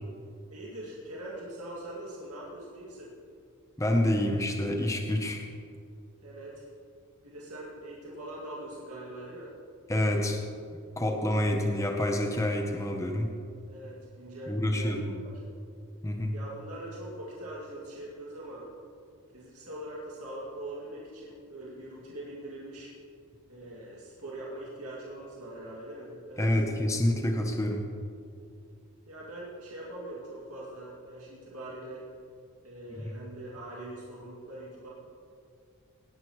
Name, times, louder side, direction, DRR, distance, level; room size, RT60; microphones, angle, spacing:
voice 1, 0.5-3.1 6.2-6.7 7.2-9.5 13.7-15.5 16.3-18.7 19.3-22.9 23.5-26.7 29.1-32.1 32.6-34.9, right 1 dB, 90° right, -5 dB, 2.3 m, -42 dB
voice 2, 3.8-5.5 9.9-10.4 11.0-13.3 14.5-15.1 16.0-16.3 26.4-27.8 32.9-33.0, left 1 dB, 15° left, 3 dB, 0.8 m, -27 dB
18.0 x 11.0 x 3.1 m, 2.4 s
head